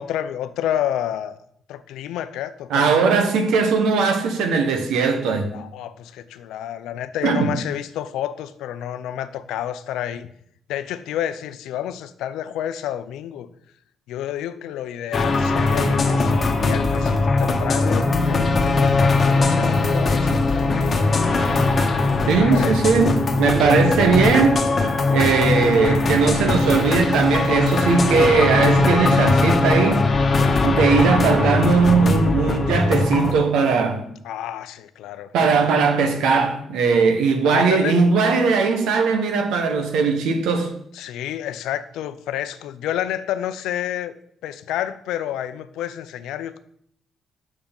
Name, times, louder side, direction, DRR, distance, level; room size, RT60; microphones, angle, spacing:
voice 1, 0.0-1.4 1.7-3.1 5.5-10.3 10.7-13.5 14.1-21.1 22.2-22.8 30.4-30.8 34.2-35.3 37.4-38.0 40.9-44.1 44.4-46.6, left 11 dB, 90° left, 0.6 m, -30 dB
voice 2, 2.7-5.5 7.2-7.5 22.3-24.7 25.1-30.1 30.6-34.0 35.3-40.7, right 5 dB, 85° right, 1.4 m, -19 dB
sound 1, 15.1-33.3, left 3 dB, 40° left, 1.3 m, -20 dB
7.2 x 6.5 x 5.4 m
cardioid pair, 90°, 0 cm